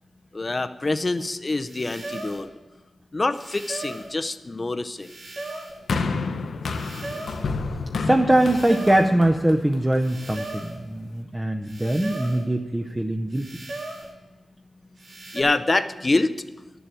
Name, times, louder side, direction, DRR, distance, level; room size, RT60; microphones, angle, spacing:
voice 1, 0.3-2.5 3.1-5.1 15.3-16.3, left 2 dB, 30° left, 10 dB, 0.5 m, -25 dB
sound 1, 1.7-2.5 3.3-4.1 5.0-5.8 6.6-7.5 8.3-9.1 10.0-10.8 11.6-12.5 13.3-14.1 15.0-15.4, right 2 dB, 65° right, 2.4 m, -37 dB
sound 2, 5.9-10.2 11.0-11.1, left 4 dB, 75° left, 0.8 m, -30 dB
voice 2, 8.0-13.5, right 1 dB, 15° right, 4 dB, 0.6 m, -22 dB
10.0 x 7.0 x 9.0 m, 1.1 s
wide cardioid pair, 90°, 0 cm